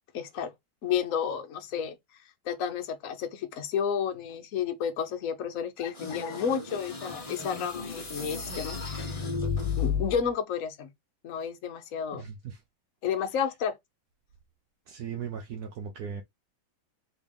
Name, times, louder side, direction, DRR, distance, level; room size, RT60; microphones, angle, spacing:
voice 1, 0.1-0.5 0.8-2.0 2.4-9.2 9.8-10.9 11.2-12.2 13.0-13.7, left 7 dB, 50° left, 1.0 m, -31 dB
sound 1, 5.9-10.3, left 5 dB, 30° left, 0.7 m, -33 dB
voice 2, 12.1-12.6 14.9-16.2, right 7 dB, 70° right, 0.9 m, -38 dB
4.2 x 3.5 x 3.5 m
omnidirectional pair, 2.3 m